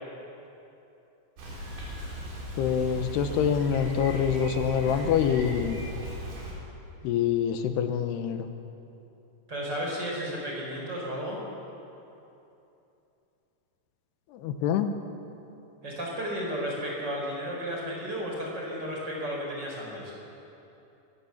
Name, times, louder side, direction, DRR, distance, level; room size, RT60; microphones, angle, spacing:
Bicycle, 1.4-6.5, equal, 80° right, 6.5 m, -37 dB
voice 1, 2.6-5.8 7.0-8.5 14.3-14.9, left 8 dB, 90° left, 8 dB, 3.2 m, -26 dB
voice 2, 9.5-11.4 15.8-20.1, equal, 25° right, -2 dB, 5.0 m, -33 dB
24.5 x 15.5 x 7.2 m, 2.9 s
omnidirectional pair, 4.6 m